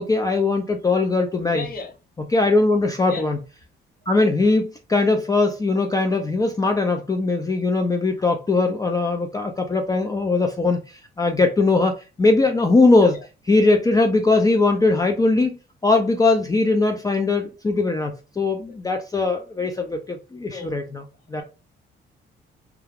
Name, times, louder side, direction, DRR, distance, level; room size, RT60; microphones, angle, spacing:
voice 1, 0.0-1.6 2.3-3.4 4.1-13.2 13.5-15.6 15.8-21.0 21.3-21.4, left 3 dB, 20° left, 0.4 m, -20 dB
voice 2, 1.5-2.0 3.0-3.3 13.1-13.2 18.7-18.8 20.5-20.8, left 4 dB, 50° left, 0.8 m, -35 dB
2.3 x 2.2 x 3.2 m
cardioid pair, 90°, 20 cm